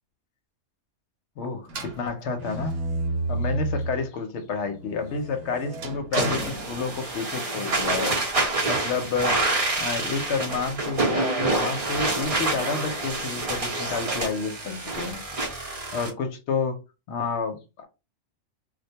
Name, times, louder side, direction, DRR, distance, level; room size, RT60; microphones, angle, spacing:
voice 1, 1.4-2.8 3.3-8.2 8.7-9.5 9.8-15.2 15.9-16.8 17.1-17.9, left 4 dB, 70° left, 0.9 m, -30 dB
sound 1, 1.7-4.1 4.5-7.4, right 2 dB, 75° right, 0.9 m, -31 dB
sound 2, 6.1-16.1, right 2 dB, 35° right, 0.7 m, -27 dB
2.2 x 2.1 x 2.8 m
omnidirectional pair, 1.3 m